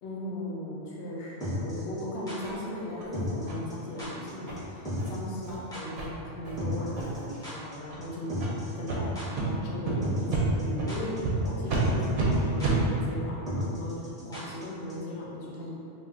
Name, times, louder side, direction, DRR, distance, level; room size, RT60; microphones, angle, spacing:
voice 1, 0.0-8.3 8.8-13.9 14.3-15.7, left 1 dB, 75° left, -5 dB, 0.9 m, -37 dB
sound 1, 1.4-2.4 3.1-3.4 3.7-3.8 4.0-4.3 4.6-4.7 4.8-5.2 5.4-5.5 5.7-5.8 6.6-7.7 8.0-8.1 8.3-8.9 9.1-9.3 10.0-10.3 10.6-11.2 11.4-11.5 11.7-12.1 12.3-12.4 12.6-12.7 13.5-14.6 14.9-15.0, equal, 5° left, 0.6 m, -34 dB
sound 2, 2.4-2.6 3.0-3.1 3.5-3.6 4.0-4.1 4.5-4.6 4.9-5.1 5.4-5.6 6.0-6.1 6.4-6.6 6.9-7.3 7.8-8.0 8.4-8.5 8.9-9.0 9.3-9.5 9.8-9.9 10.3-10.4 10.8-10.9 11.2-11.3 11.7-11.8 12.1-12.3 12.6-12.8, right 4 dB, 60° right, 0.7 m, -30 dB
2.4 x 2.2 x 3.6 m, 2.8 s
omnidirectional pair, 1.2 m